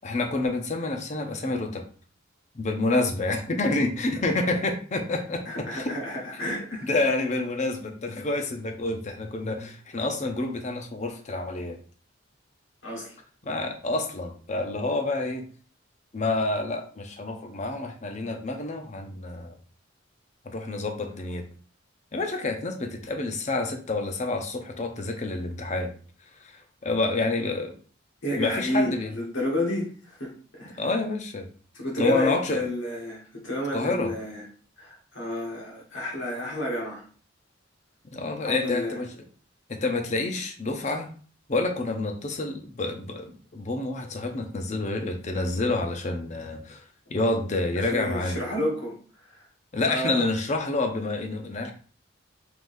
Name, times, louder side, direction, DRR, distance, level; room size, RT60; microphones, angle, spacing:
voice 1, 0.0-1.8 2.5-5.4 5.7-6.0 6.8-11.8 13.4-15.4 16.1-19.6 20.4-21.4 22.1-25.9 26.4-27.7 28.3-29.1 30.8-31.5 32.0-32.6 33.7-34.1 38.1-39.1 39.7-41.1 41.5-46.8 47.1-48.4 49.7-51.7, left 2 dB, 40° left, 0.7 m, -28 dB
voice 2, 5.4-6.9 12.8-13.1 28.2-30.8 31.7-34.4 34.8-37.0 38.4-39.0 47.8-49.0 49.3-49.4 49.8-50.3, left 1 dB, 75° left, 1.5 m, -31 dB
4.8 x 3.8 x 2.6 m
head